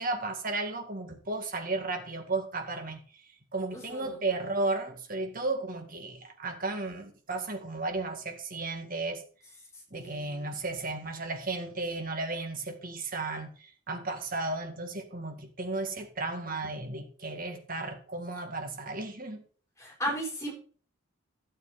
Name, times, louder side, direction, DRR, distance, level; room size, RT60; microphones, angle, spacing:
voice 1, 0.0-3.3 3.5-9.2 9.9-19.4, right 3 dB, 40° right, 2.1 m, -34 dB
voice 2, 3.7-4.2 9.9-10.5 19.8-20.5, equal, 15° left, 4.2 m, -35 dB
12.5 x 7.7 x 4.3 m
head